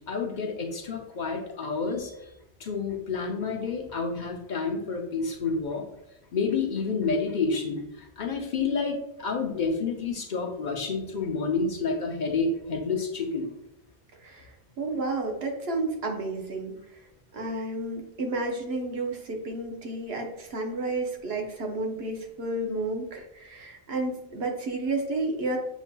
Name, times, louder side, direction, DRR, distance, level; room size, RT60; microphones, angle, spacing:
voice 1, 0.0-2.1 2.6-5.8 6.3-7.8 8.2-13.5, left 4 dB, 50° left, 2 dB, 0.7 m, -29 dB
voice 2, 14.8-16.7 17.3-25.6, right 2 dB, 80° right, 2 dB, 1.1 m, -31 dB
7.0 x 2.7 x 2.2 m, 0.84 s
omnidirectional pair, 1.0 m